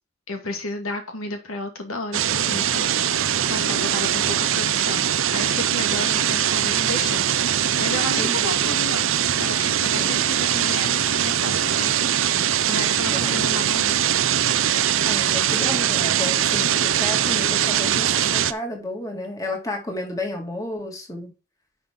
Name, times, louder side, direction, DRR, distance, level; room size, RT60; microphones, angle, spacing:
voice 1, 0.3-9.1 9.4-11.9 12.7-14.0, left 2 dB, 80° left, 2.3 m, -32 dB
sound 1, 2.1-18.5, right 10 dB, 70° right, 0.7 m, -22 dB
voice 2, 8.2-8.6 10.0-10.4 13.1-13.6 15.0-21.3, left 1 dB, 15° left, 2.6 m, -32 dB
11.0 x 5.4 x 3.8 m
head